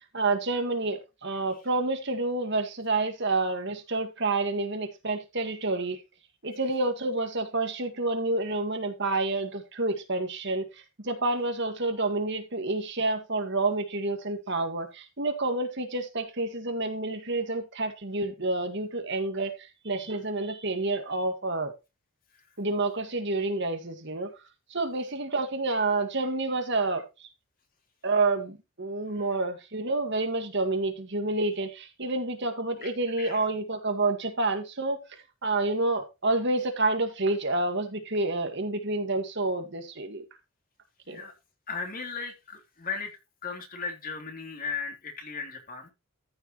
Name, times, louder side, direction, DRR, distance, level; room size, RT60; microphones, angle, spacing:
voice 1, 0.1-6.0 6.4-10.7 11.0-19.5 19.8-21.7 22.6-24.3 24.7-27.0 28.0-35.0 35.4-40.2 41.1-41.2, right 2 dB, 55° right, 1.9 m, -29 dB
voice 2, 41.7-43.1 43.4-45.9, left 5 dB, 40° left, 3.2 m, -36 dB
14.0 x 6.8 x 3.1 m
head